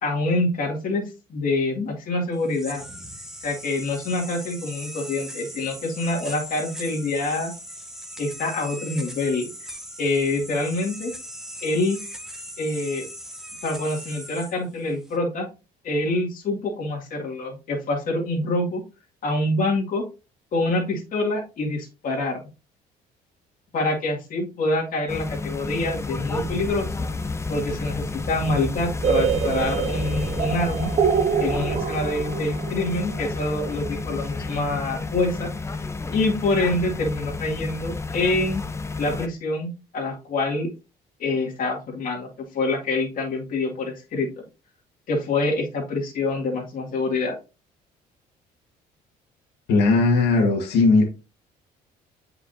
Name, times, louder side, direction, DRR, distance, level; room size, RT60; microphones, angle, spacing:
voice 1, 0.0-2.9 3.4-7.5 8.2-9.5 10.0-11.1 11.6-12.0 12.6-13.0 13.6-15.5 15.8-18.8 19.2-20.0 20.5-22.5 23.7-26.9 27.5-30.9 31.4-35.8 36.1-38.6 39.0-40.7 41.2-44.3 45.1-47.3, left 2 dB, 55° left, 2.2 m, -26 dB
sound 1, 2.3-15.2, equal, 5° right, 1.2 m, -39 dB
sound 2, 25.1-39.3, left 3 dB, 15° left, 0.6 m, -31 dB
sound 3, 29.0-34.8, right 7 dB, 40° right, 0.6 m, -26 dB
voice 2, 49.7-51.0, left 3 dB, 80° left, 1.7 m, -18 dB
8.2 x 4.9 x 2.7 m
cardioid pair, 110°, 17 cm